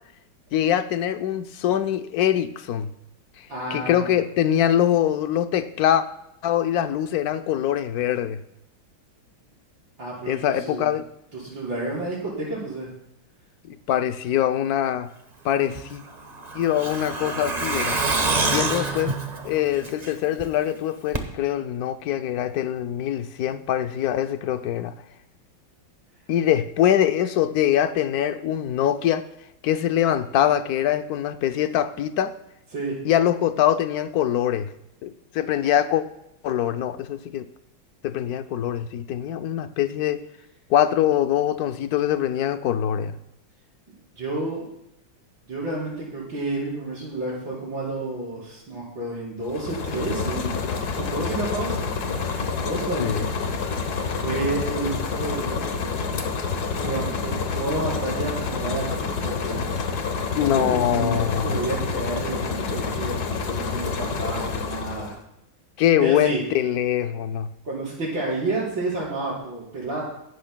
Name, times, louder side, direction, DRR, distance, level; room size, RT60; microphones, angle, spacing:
voice 1, 0.5-2.9 3.4-6.0 6.4-8.4 10.3-11.0 13.6-15.1 15.4-16.0 16.5-18.0 18.5-19.2 19.4-24.9 26.3-29.2 29.6-32.3 33.0-34.7 35.0-36.0 36.4-37.5 38.0-40.2 40.7-43.2 53.0-53.2 60.3-61.6 65.8-67.5, left 10 dB, 75° left, 0.8 m, -23 dB
voice 2, 3.5-4.1 10.0-10.9 11.3-12.9 32.7-33.0 44.2-44.7 45.5-50.5 50.9-51.8 52.6-53.3 53.6-53.8 54.2-55.9 56.8-59.6 60.5-61.1 61.4-65.2 66.0-66.4 67.6-70.0, right 2 dB, 65° right, 5.6 m, -30 dB
Truck, 15.7-20.4 20.7-20.8 21.1-21.2, right 3 dB, 25° right, 0.9 m, -26 dB
sound 1, 49.4-65.2, left 5 dB, 55° left, 1.5 m, -28 dB
23.5 x 11.5 x 2.2 m
omnidirectional pair, 2.3 m